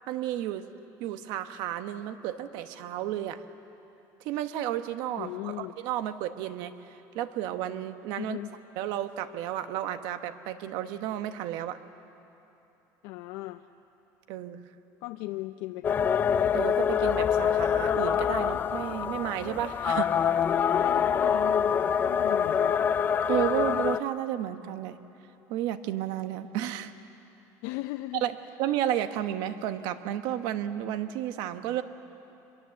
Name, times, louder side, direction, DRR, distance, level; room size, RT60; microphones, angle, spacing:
voice 1, 0.1-0.6 1.0-3.4 4.2-8.4 8.8-11.8 14.3-14.6 16.5-20.1 23.3-25.0 25.5-26.9 28.2-31.8, right 11 dB, 65° right, 10 dB, 1.1 m, -32 dB
voice 2, 5.2-5.8 8.2-8.5 13.0-13.7 15.0-16.2 20.7-22.8 27.6-28.3, left 17 dB, 70° left, 7 dB, 0.6 m, -37 dB
sound 1, 15.8-24.0, left 8 dB, 25° left, 0.5 m, -25 dB
25.0 x 22.5 x 7.7 m, 3.0 s
cardioid pair, 160°, 8 cm